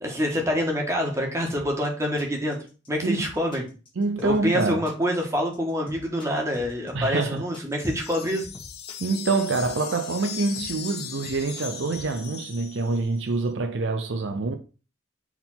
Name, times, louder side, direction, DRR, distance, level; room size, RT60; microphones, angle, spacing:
voice 1, 0.0-2.6 2.9-3.6 4.2-8.5, equal, 15° right, 1.6 m, -26 dB
sound 1, 1.5-12.1, left 1 dB, 25° left, 1.5 m, -45 dB
voice 2, 4.0-4.8 6.9-7.4 9.0-14.6, right 3 dB, 65° right, 0.6 m, -26 dB
sound 2, 7.7-13.2, left 8 dB, 60° left, 0.7 m, -38 dB
4.7 x 3.8 x 5.7 m
head